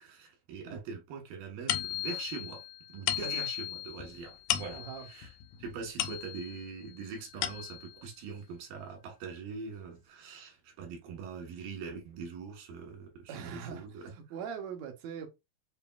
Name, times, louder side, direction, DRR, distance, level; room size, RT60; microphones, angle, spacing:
voice 1, 0.0-5.3 5.6-14.1, right 5 dB, 85° right, 3.1 m, -43 dB
sound 1, 1.7-6.7 7.1-8.0, left 13 dB, 80° left, 1.8 m, -36 dB
voice 2, 4.8-5.1 13.3-15.3, right 7 dB, 70° right, 1.7 m, -42 dB
6.9 x 2.5 x 2.3 m
omnidirectional pair, 4.0 m